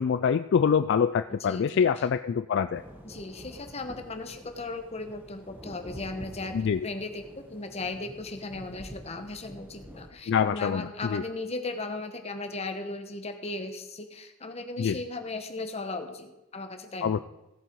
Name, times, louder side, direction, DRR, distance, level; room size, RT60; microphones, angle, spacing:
voice 1, 0.0-2.8 6.5-6.8 10.3-11.2 14.8-15.0 17.0-17.2, left 7 dB, 55° left, 12 dB, 0.3 m, -25 dB
voice 2, 1.3-2.1 3.0-17.2, left 2 dB, 30° left, 7 dB, 1.1 m, -37 dB
sound 1, 2.7-10.1, equal, 10° right, 1.2 m, -47 dB
16.0 x 7.8 x 4.6 m, 1.0 s
head